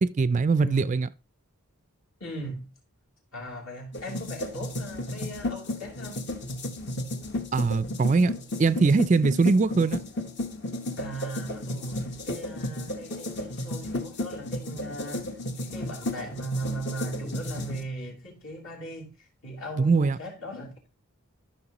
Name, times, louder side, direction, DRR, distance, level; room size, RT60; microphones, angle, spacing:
voice 1, 0.0-1.1 7.5-8.3 8.6-10.0 19.8-20.2, right 4 dB, 35° right, 0.3 m, -22 dB
voice 2, 0.6-1.0 2.2-2.7 3.3-6.3 11.0-15.3 15.6-20.9, right 1 dB, 70° left, 2.9 m, -38 dB
sound 1, 3.9-17.8, left 1 dB, 50° left, 1.0 m, -33 dB
13.5 x 6.0 x 3.0 m
head